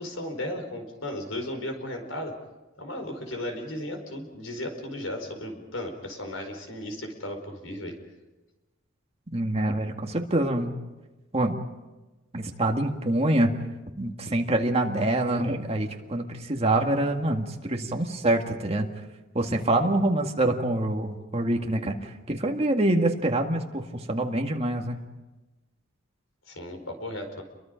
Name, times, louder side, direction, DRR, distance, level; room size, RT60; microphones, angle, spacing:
voice 1, 0.0-2.3 2.8-7.9 26.5-27.4, left 1 dB, 85° left, 5 dB, 4.6 m, -35 dB
voice 2, 9.3-10.7 11.3-11.5 12.3-13.5 14.0-18.9 19.3-25.0, right 1 dB, 30° right, 3 dB, 2.0 m, -25 dB
29.5 x 23.0 x 5.2 m, 1.1 s
head